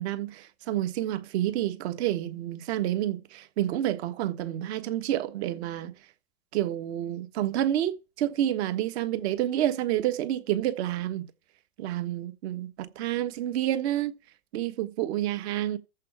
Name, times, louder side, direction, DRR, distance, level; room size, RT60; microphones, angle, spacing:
voice 1, 0.0-5.9 6.5-11.3 11.8-14.1 14.5-15.8, right 12 dB, 50° right, 1.5 m, -29 dB
14.0 x 4.8 x 8.7 m
hypercardioid pair, 130°, 42 cm